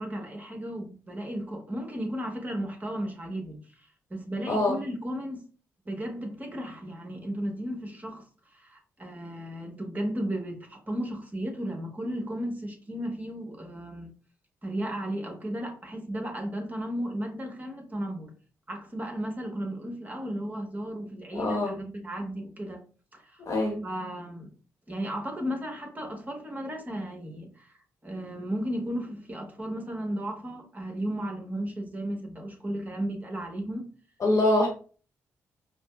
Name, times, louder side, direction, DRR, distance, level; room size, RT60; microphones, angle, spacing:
voice 1, 0.0-5.4 5.8-8.2 8.5-14.1 14.6-18.3 18.7-22.8 23.1-23.4 23.8-24.5 24.9-27.7 28.0-33.8, equal, 25° right, 1.2 m, -34 dB
voice 2, 4.5-4.8 21.3-21.8 23.4-23.8 34.2-34.7, left 2 dB, 50° left, 1.0 m, -24 dB
4.9 x 2.0 x 2.3 m
supercardioid pair, 50°, 7 cm